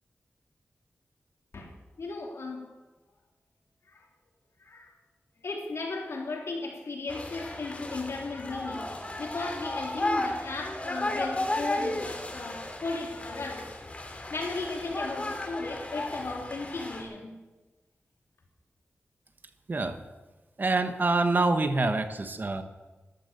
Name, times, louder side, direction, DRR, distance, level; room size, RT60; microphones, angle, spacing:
voice 1, 2.0-2.7 3.9-4.1 4.6-4.9 5.4-13.7 14.3-17.4, left 3 dB, 80° left, 0 dB, 3.3 m, -36 dB
sound 1, 7.1-17.0, left 1 dB, 30° left, 2.6 m, -34 dB
voice 2, 19.7-20.0 20.6-22.6, right 3 dB, 45° right, 8 dB, 1.2 m, -26 dB
14.0 x 12.0 x 6.8 m, 1.2 s
wide cardioid pair, 95°, 4 cm